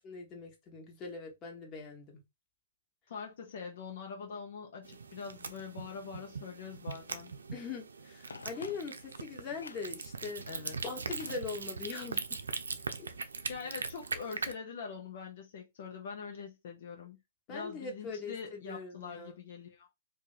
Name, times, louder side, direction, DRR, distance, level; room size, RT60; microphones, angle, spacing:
voice 1, 0.0-2.2 7.5-10.4 10.8-12.4 13.0-13.1 17.5-19.3, left 4 dB, 25° left, 1.3 m, -41 dB
voice 2, 3.1-7.3 10.5-10.8 13.1-13.2 13.5-17.2 17.5-19.9, left 5 dB, 60° left, 0.9 m, -44 dB
sound 1, 4.8-14.5, right 4 dB, 85° right, 0.5 m, -41 dB
Telephone, 8.3-9.2 9.6-10.0 11.1-12.0 12.2-12.3, left 4 dB, 85° left, 0.5 m, -49 dB
2.8 x 2.6 x 4.1 m
hypercardioid pair, 130°, 0 cm